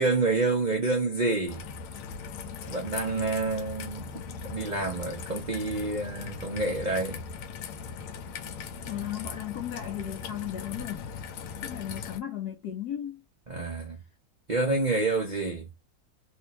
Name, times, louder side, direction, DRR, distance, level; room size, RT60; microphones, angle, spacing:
voice 1, 0.0-1.6 2.7-7.2 13.5-14.0 14.5-15.7, right 3 dB, 55° right, 0.4 m, -28 dB
Raindrop / Trickle dribble, 1.5-12.2, left 6 dB, 85° left, 1.5 m, -39 dB
voice 2, 8.9-11.1 11.6-13.2, left 11 dB, 70° left, 1.0 m, -36 dB
3.5 x 2.6 x 2.9 m
omnidirectional pair, 2.3 m